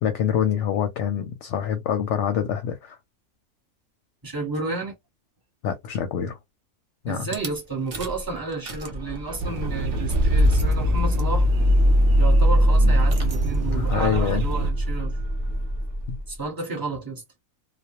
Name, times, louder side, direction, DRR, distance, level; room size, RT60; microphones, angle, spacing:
voice 1, 0.0-3.0 5.6-6.4 7.0-7.3 12.8-12.9 13.7-14.4 16.1-16.2, left 9 dB, 65° left, 0.8 m, -26 dB
voice 2, 4.2-4.9 7.0-11.5 12.2-15.1 16.3-17.2, right 3 dB, 15° right, 1.0 m, -31 dB
Rattle / Car / Engine starting, 7.3-7.5 7.9-8.2 8.5-16.3, equal, 40° right, 0.5 m, -21 dB
sound 1, 9.4-14.7, right 3 dB, 65° right, 0.8 m, -30 dB
2.3 x 2.1 x 2.8 m
omnidirectional pair, 1.4 m